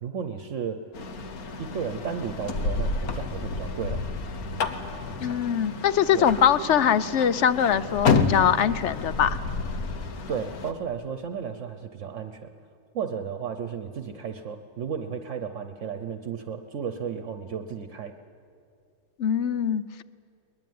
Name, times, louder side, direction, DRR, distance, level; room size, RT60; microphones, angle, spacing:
voice 1, 0.0-0.8 1.6-4.1 6.1-6.3 10.3-12.5 12.9-18.1, right 7 dB, 60° right, 9 dB, 1.2 m, -33 dB
sound 1, 0.9-10.7, left 4 dB, 80° left, 1.7 m, -30 dB
voice 2, 5.2-9.4 19.2-20.0, left 8 dB, 60° left, 15 dB, 0.9 m, -22 dB
22.0 x 20.0 x 9.4 m, 2.4 s
omnidirectional pair, 1.5 m